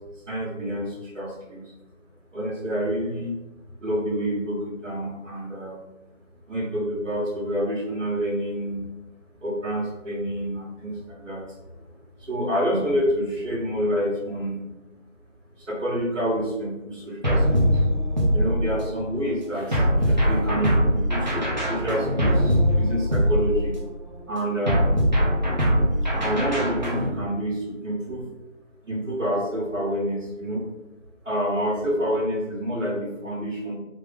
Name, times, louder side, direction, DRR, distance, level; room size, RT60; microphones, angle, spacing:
voice 1, 0.2-1.7 2.3-3.3 3.8-5.8 6.5-8.8 9.4-11.9 12.2-14.6 15.6-17.9 18.3-23.8 24.3-24.9 26.1-28.2 28.8-30.6 31.2-33.7, equal, 75° right, -5 dB, 1.5 m, -28 dB
sound 1, 17.2-19.0 19.7-23.9 24.7-27.1, equal, 35° right, 0.6 m, -22 dB
3.2 x 2.8 x 3.4 m, 1.0 s
figure-of-eight pair, 165°, 39 cm